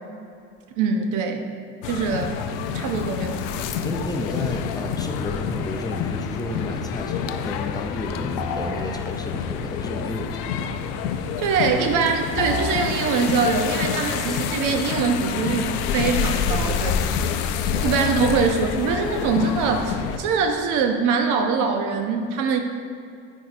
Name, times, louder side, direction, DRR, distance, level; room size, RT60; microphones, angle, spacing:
voice 1, 0.8-1.5 1.8-2.4 2.7-3.4 11.4-16.9 17.8-22.6, right 5 dB, 70° right, 5 dB, 0.8 m, -23 dB
sound 1, 1.8-20.2, left 7 dB, 85° left, 0.5 m, -27 dB
voice 2, 3.8-10.5 16.5-17.2 17.7-18.4, left 2 dB, 10° left, 2 dB, 0.6 m, -32 dB
sound 2, 8.4-8.8 12.4-12.8, left 3 dB, 60° left, 0.8 m, -28 dB
10.5 x 4.5 x 2.6 m, 2.4 s
supercardioid pair, 90°, 32 cm